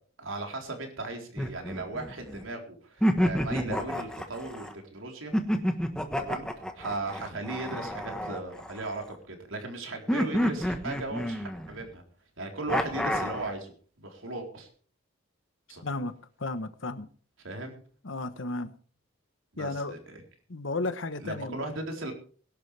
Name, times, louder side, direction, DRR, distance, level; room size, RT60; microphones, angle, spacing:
voice 1, 0.2-5.3 6.2-6.5 6.7-12.0 12.4-14.7 15.7-15.8 17.4-17.8 19.5-20.2 21.2-22.1, right 2 dB, 75° right, 4.0 m, -37 dB
sound 1, 1.4-2.4 3.0-4.7 5.3-9.1 10.1-11.9 12.7-13.5, equal, 5° left, 1.4 m, -29 dB
voice 2, 15.8-17.1 18.0-18.7 19.6-20.0 20.5-21.7, left 2 dB, 70° left, 1.1 m, -34 dB
21.5 x 12.0 x 3.4 m
head